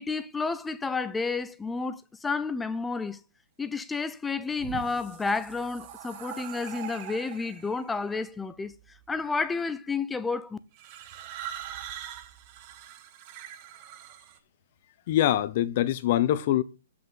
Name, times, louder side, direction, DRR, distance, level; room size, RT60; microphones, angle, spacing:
voice 1, 0.0-3.2 3.6-8.7 9.1-10.6, left 4 dB, 5° left, 0.6 m, -31 dB
sound 1, 4.4-7.8 8.7-9.2 10.7-14.4, right 10 dB, 35° right, 1.2 m, -42 dB
voice 2, 15.1-16.6, left 12 dB, 45° left, 0.9 m, -24 dB
7.9 x 6.1 x 7.0 m
hypercardioid pair, 155°, 0 cm